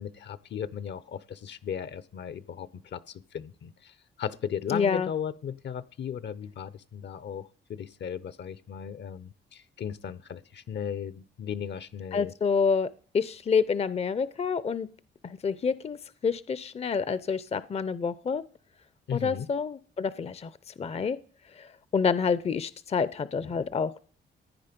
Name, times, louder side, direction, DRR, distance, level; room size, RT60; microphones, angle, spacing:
voice 1, 0.0-3.0 3.3-3.7 4.2-7.4 7.7-12.3 19.1-19.5, left 8 dB, 65° left, 16 dB, 0.8 m, -36 dB
voice 2, 4.7-5.1 12.1-14.9 15.2-16.0 16.2-18.4 19.1-21.2 21.6-24.0, left 5 dB, 30° left, 16 dB, 0.6 m, -28 dB
15.5 x 10.0 x 5.2 m, 0.43 s
cardioid pair, 105°, 20 cm